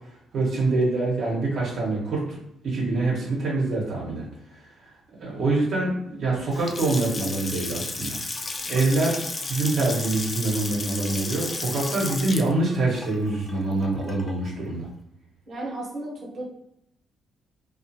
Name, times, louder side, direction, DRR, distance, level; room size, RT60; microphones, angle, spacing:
voice 1, 0.3-2.2 2.6-4.2 5.2-8.2 8.7-14.9, right 2 dB, 65° right, -5 dB, 1.0 m, -25 dB
Water tap faucet / Sink (filling or washing) / Splash splatter, 6.4-14.5, left 3 dB, 35° left, 0.4 m, -33 dB
voice 2, 15.5-16.5, right 2 dB, 45° right, -4 dB, 1.1 m, -34 dB
2.4 x 2.4 x 2.7 m, 0.79 s
cardioid pair, 90°, 0 cm